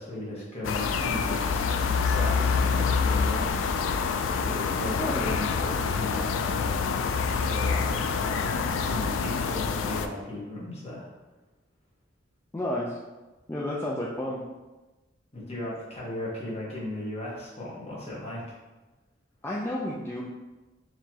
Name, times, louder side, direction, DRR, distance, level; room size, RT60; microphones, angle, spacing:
voice 1, 0.0-3.5 3.9-7.0 7.3-8.5 8.8-11.1 15.3-18.4, left 1 dB, 35° left, -6 dB, 1.3 m, -36 dB
sound 1, 0.6-10.1, left 5 dB, 85° left, 0.3 m, -26 dB
voice 2, 12.5-13.0 13.5-14.4 19.4-20.2, left 1 dB, 15° left, -5 dB, 0.4 m, -31 dB
4.4 x 3.0 x 2.8 m, 1.1 s
head